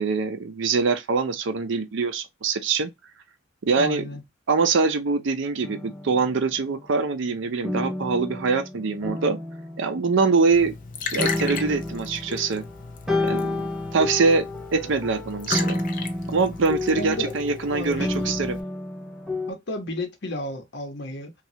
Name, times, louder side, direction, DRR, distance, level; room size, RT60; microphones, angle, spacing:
voice 1, 0.0-2.9 3.6-4.0 4.5-9.4 9.8-10.7 11.1-12.6 13.2-14.5 14.7-15.8 16.3-18.6, right 4 dB, 65° right, 0.5 m, -24 dB
voice 2, 3.8-4.2 16.9-17.3 17.7-18.4 19.5-21.3, left 1 dB, 60° left, 0.9 m, -32 dB
sound 1, 5.6-6.8 7.6-10.8 11.2-19.5, left 2 dB, 5° right, 0.6 m, -30 dB
Liquid, 10.5-18.6, left 5 dB, 45° left, 0.5 m, -36 dB
3.0 x 2.3 x 2.7 m
head